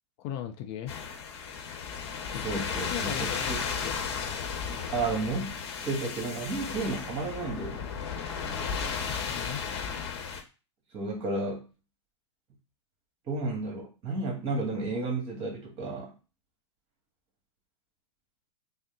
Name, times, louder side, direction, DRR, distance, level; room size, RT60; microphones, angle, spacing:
voice 1, 0.2-1.0 2.3-2.4 2.7-4.0 9.1-9.6, left 10 dB, 45° left, 7 dB, 0.5 m, -37 dB
sound 1, 0.9-10.4, left 6 dB, 60° left, 0.9 m, -34 dB
voice 2, 2.4-3.6 4.9-5.5 5.8-7.9 10.9-11.7 13.3-16.1, right 3 dB, 35° right, 0 dB, 1.8 m, -32 dB
3.8 x 2.1 x 3.8 m, 0.31 s
hypercardioid pair, 105°, 16 cm